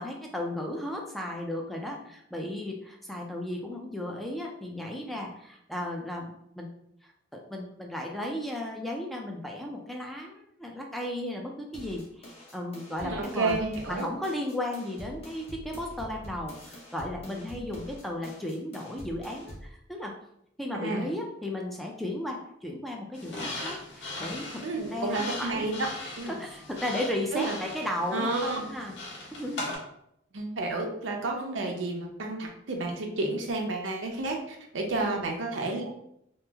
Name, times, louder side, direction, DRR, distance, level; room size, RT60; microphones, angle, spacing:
voice 1, 0.0-6.7 7.0-13.6 13.9-20.1 20.6-24.6 24.9-25.7 26.2-28.3 28.7-28.9 29.3-29.7 35.0-35.3, left 1 dB, ahead, 0 dB, 0.4 m, -35 dB
sound 1, 11.7-19.7, equal, 35° left, 0.8 m, -46 dB
voice 2, 13.0-14.1 20.8-21.1 24.6-25.7 26.2-26.4 27.3-27.6 28.1-28.6 30.3-35.9, right 3 dB, 85° right, 2 dB, 0.6 m, -31 dB
sound 2, 23.1-29.8, left 2 dB, 75° left, 1.0 m, -39 dB
2.9 x 2.0 x 3.4 m, 0.76 s
head